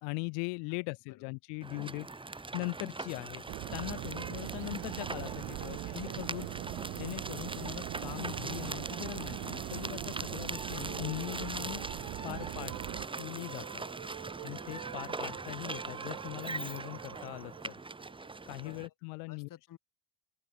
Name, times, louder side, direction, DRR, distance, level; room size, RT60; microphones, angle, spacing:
voice 1, 0.0-3.4 3.7-6.5 6.9-12.8 13.2-13.8 14.4-17.7 18.5-19.5, left 40 dB or more, 85° left, 1.4 m, -40 dB
sound 1, 1.6-18.9, right 3 dB, 15° right, 2.2 m, -41 dB
sound 2, 3.5-13.1, right 21 dB, 60° right, 0.6 m, -41 dB
voice 2, 5.6-6.6 18.6-18.8 19.3-19.8, left 12 dB, 55° left, 6.1 m, -54 dB
sound 3, 7.9-18.8, right 24 dB, 75° right, 4.7 m, -49 dB
open air
supercardioid pair, 100°, 40 cm